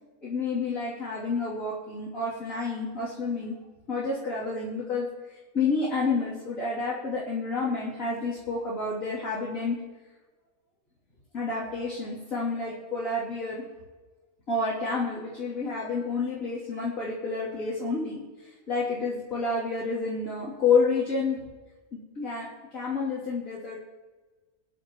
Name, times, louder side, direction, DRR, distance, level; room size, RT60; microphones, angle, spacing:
voice 1, 0.2-3.6 3.9-5.1 5.5-9.7 11.3-13.6 14.5-18.2 18.7-21.4 21.9-22.5 22.7-23.8, left 4 dB, 65° left, -9 dB, 3.4 m, -29 dB
23.0 x 10.5 x 3.0 m, 1.3 s
omnidirectional pair, 1.5 m